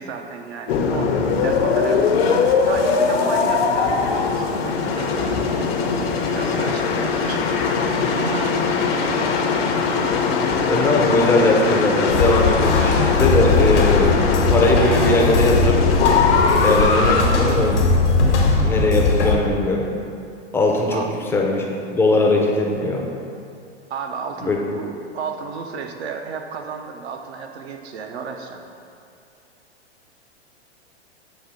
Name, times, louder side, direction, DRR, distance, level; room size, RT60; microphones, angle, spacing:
voice 1, 0.0-4.5 4.9-5.7 6.3-7.7 8.2-8.6 8.9-9.3 20.9-21.1 23.9-28.6, right 5 dB, 70° right, 4 dB, 0.7 m, -33 dB
sound 1, 0.7-17.2, left 5 dB, 60° left, 0.7 m, -20 dB
voice 2, 10.7-14.1 14.5-15.8 16.5-17.8 18.6-19.9 20.5-21.0 21.3-23.1 24.4-24.6, left 2 dB, 5° left, -1 dB, 0.5 m, -20 dB
sound 2, 12.1-19.4, left 3 dB, 90° left, 1.1 m, -19 dB
7.0 x 2.7 x 5.1 m, 2.5 s
hypercardioid pair, 115°, 34 cm